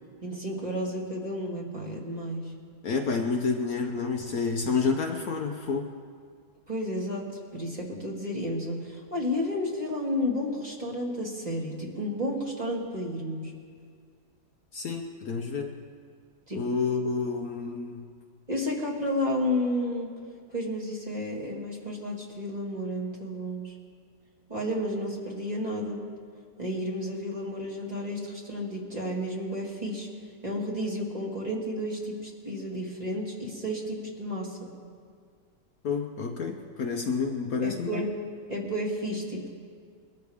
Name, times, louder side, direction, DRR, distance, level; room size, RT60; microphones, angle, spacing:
voice 1, 0.2-2.4 6.7-13.5 16.5-16.6 18.5-20.1 20.5-23.7 24.5-26.0 26.6-30.1 30.4-34.7 37.6-38.1 38.5-39.5, left 1 dB, 25° right, -3 dB, 2.2 m, -32 dB
voice 2, 2.8-5.9 14.7-15.7 16.5-18.1 35.8-38.1, left 4 dB, 60° left, 3 dB, 1.2 m, -29 dB
22.5 x 13.5 x 3.5 m, 2.1 s
omnidirectional pair, 1.9 m